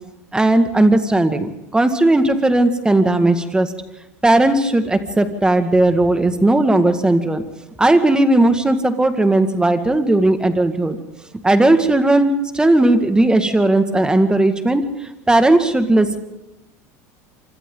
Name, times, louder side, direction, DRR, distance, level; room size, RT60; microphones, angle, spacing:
voice 1, 0.3-3.7 4.2-7.4 7.8-11.0 11.4-14.8 15.3-16.2, right 2 dB, 10° right, 8 dB, 2.1 m, -16 dB
26.0 x 25.0 x 4.0 m, 0.93 s
hypercardioid pair, 90°, 8 cm